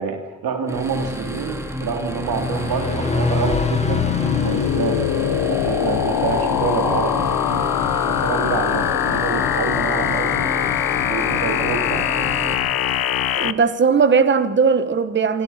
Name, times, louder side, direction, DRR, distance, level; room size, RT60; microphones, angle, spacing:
voice 1, 0.0-4.0 4.4-7.7 8.0-10.5 11.0-12.2, right 6 dB, 85° right, 3.3 m, -27 dB
sound 1, 0.7-12.5, right 1 dB, 10° right, 3.9 m, -31 dB
sound 2, 2.1-6.0, left 4 dB, 20° left, 1.4 m, -26 dB
sound 3, 3.5-13.5, left 11 dB, 85° left, 1.1 m, -22 dB
voice 2, 13.4-15.4, right 5 dB, 30° right, 1.3 m, -18 dB
27.5 x 24.0 x 5.9 m
cardioid pair, 125°, 35 cm